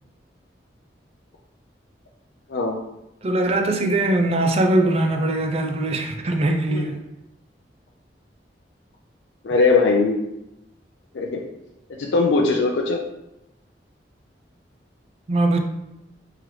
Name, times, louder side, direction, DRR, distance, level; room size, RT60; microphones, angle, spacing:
voice 1, 3.2-6.9 15.3-15.6, right 2 dB, 35° right, 4 dB, 0.4 m, -21 dB
voice 2, 9.4-10.1 11.1-11.4 12.0-13.0, left 3 dB, 85° left, 0 dB, 0.4 m, -20 dB
3.7 x 3.0 x 3.1 m, 0.90 s
head